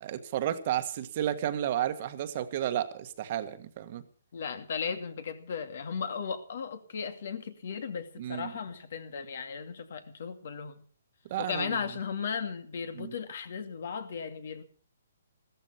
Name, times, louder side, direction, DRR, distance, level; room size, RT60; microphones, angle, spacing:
voice 1, 0.0-4.0 8.2-8.5 11.3-11.8 13.0-13.1, right 11 dB, 35° right, 1.4 m, -32 dB
voice 2, 4.3-10.8 11.4-14.6, left 6 dB, 55° left, 2.4 m, -36 dB
15.5 x 14.0 x 5.7 m
hypercardioid pair, 165°, 0 cm